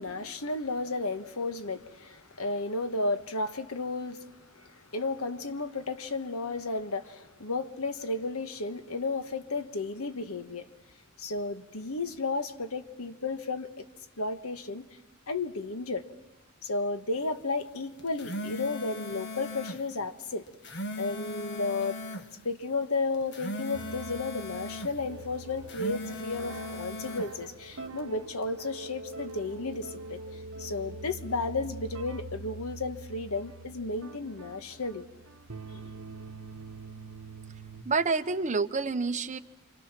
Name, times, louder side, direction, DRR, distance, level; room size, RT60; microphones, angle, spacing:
voice 1, 0.0-10.7 11.2-13.8 14.2-14.9 15.3-16.1 16.6-20.5 20.9-22.0 22.4-35.0, left 3 dB, 90° left, 1.4 m, -33 dB
sound 1, 18.0-19.8 20.5-22.3 23.1-24.9 25.6-27.3, left 1 dB, 55° left, 1.7 m, -38 dB
sound 2, 23.7-37.8, right 2 dB, 65° right, 1.1 m, -44 dB
voice 2, 37.8-39.4, right 4 dB, 35° right, 0.9 m, -28 dB
29.0 x 25.5 x 6.0 m
head